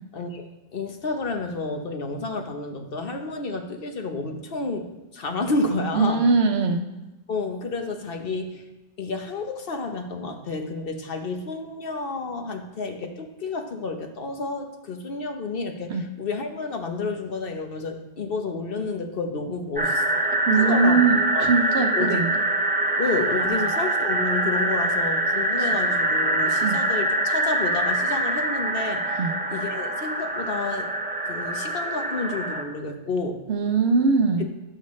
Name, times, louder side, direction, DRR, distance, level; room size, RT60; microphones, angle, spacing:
voice 1, 0.1-6.2 7.3-8.6 9.0-20.0 20.3-21.1 21.3-21.5 22.0-22.2 23.0-30.9 31.3-33.4, left 3 dB, 65° left, 5 dB, 1.1 m, -30 dB
voice 2, 5.9-6.8 15.9-16.0 20.5-22.3 26.6-26.8 29.2-29.3 33.5-34.4, right 4 dB, 80° right, 6 dB, 1.1 m, -21 dB
sound 1, 19.8-32.6, right 1 dB, 10° right, 0.5 m, -24 dB
11.5 x 6.6 x 3.2 m, 0.99 s
omnidirectional pair, 1.0 m